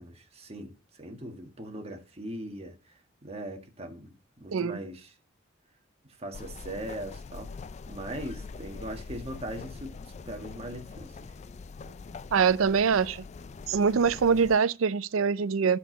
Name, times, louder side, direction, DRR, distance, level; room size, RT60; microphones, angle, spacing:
voice 1, 0.0-5.1 6.2-7.5 7.9-11.3 11.8-11.9, right 1 dB, 30° right, 1.6 m, -40 dB
sound 1, 6.3-14.6, left 4 dB, 35° left, 0.3 m, -43 dB
voice 2, 12.3-13.2 13.7-15.8, right 6 dB, 85° right, 0.5 m, -24 dB
9.3 x 6.3 x 3.9 m
head